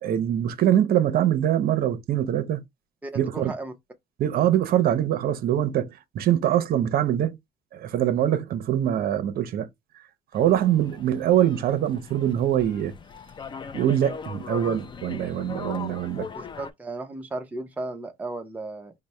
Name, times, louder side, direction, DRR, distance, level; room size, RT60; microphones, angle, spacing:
voice 1, 0.0-2.6 3.1-3.5 4.2-7.4 7.7-9.7 10.3-12.9 13.7-16.3, right 11 dB, 60° right, 0.7 m, -23 dB
voice 2, 3.0-3.7 16.3-18.9, right 2 dB, 10° right, 0.7 m, -35 dB
sound 1, 10.3-16.7, left 6 dB, 30° left, 0.4 m, -39 dB
4.0 x 2.1 x 3.1 m
cardioid pair, 110°, 17 cm